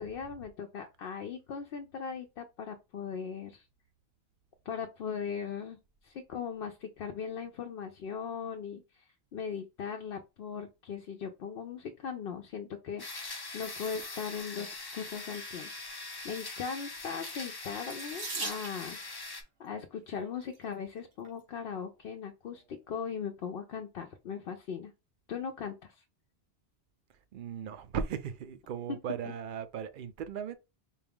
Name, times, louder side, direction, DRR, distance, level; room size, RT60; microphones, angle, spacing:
voice 1, 0.0-3.7 4.7-15.7 16.2-19.0 19.6-24.9 25.3-26.0, left 6 dB, 65° left, 0.7 m, -39 dB
sound 1, 13.0-19.4, left 3 dB, 30° left, 0.6 m, -42 dB
Water tap faucet / Sink (filling or washing), 17.9-19.1 20.2-20.6 21.2-21.3 21.7-21.8, right 3 dB, 90° right, 1.6 m, -40 dB
voice 2, 27.3-30.6, right 7 dB, 60° right, 0.7 m, -37 dB
4.5 x 2.3 x 3.4 m
omnidirectional pair, 1.1 m